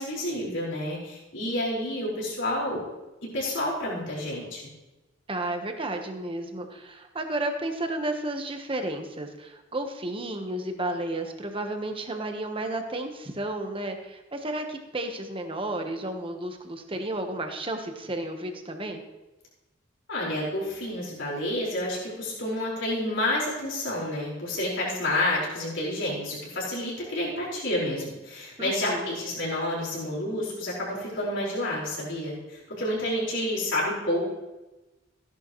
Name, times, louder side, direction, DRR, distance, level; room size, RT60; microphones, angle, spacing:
voice 1, 0.0-2.8 3.2-4.6 20.1-34.3, left 1 dB, 70° left, -6 dB, 4.9 m, -29 dB
voice 2, 5.3-19.0 28.6-29.1, right 1 dB, 30° right, 5 dB, 1.3 m, -32 dB
15.5 x 11.0 x 3.2 m, 1.1 s
head